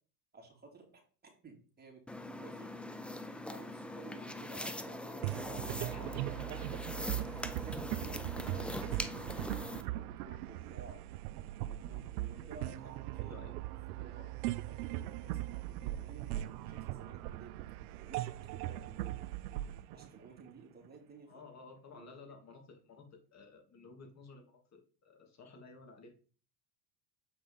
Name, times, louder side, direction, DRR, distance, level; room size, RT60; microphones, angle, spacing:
voice 1, 0.3-2.0 2.4-2.7 3.3-5.6 6.0-6.5 7.1-11.0 11.6-13.4 14.0-14.3 14.7-15.4 15.6-17.6 18.0-19.2 19.9-21.4 21.9-22.1, right 4 dB, 20° right, 0 dB, 3.1 m, -54 dB
sound 1, 2.1-9.8, left 1 dB, 5° left, 0.3 m, -42 dB
sound 2, 5.2-20.9, right 15 dB, 70° right, 0.7 m, -40 dB
voice 2, 5.5-6.4 12.2-12.6 13.2-13.6 15.2-15.4 21.3-26.1, left 3 dB, 35° left, 4 dB, 2.7 m, -54 dB
7.8 x 5.4 x 4.1 m, 0.39 s
hypercardioid pair, 90°, 47 cm